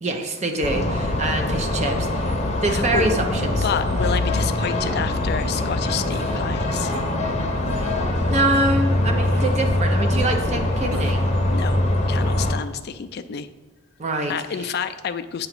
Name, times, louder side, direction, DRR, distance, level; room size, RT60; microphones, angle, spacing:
voice 1, 0.0-3.6 7.8-7.9 8.2-11.2 14.0-14.3, right 2 dB, 30° right, 5 dB, 0.6 m, -25 dB
sound 1, 0.6-12.5, left 1 dB, 30° left, 0.8 m, -23 dB
voice 2, 2.7-3.1 3.6-6.9 11.5-13.5 14.3-15.5, left 7 dB, 50° left, 10 dB, 0.3 m, -29 dB
sound 2, 5.5-5.6 6.1-6.4 6.9-7.0 7.6-8.0 8.5-8.6 9.2-9.6 10.2-10.3 10.9-11.3, right 3 dB, 80° right, 0.7 m, -36 dB
7.9 x 2.9 x 5.9 m, 1.2 s
head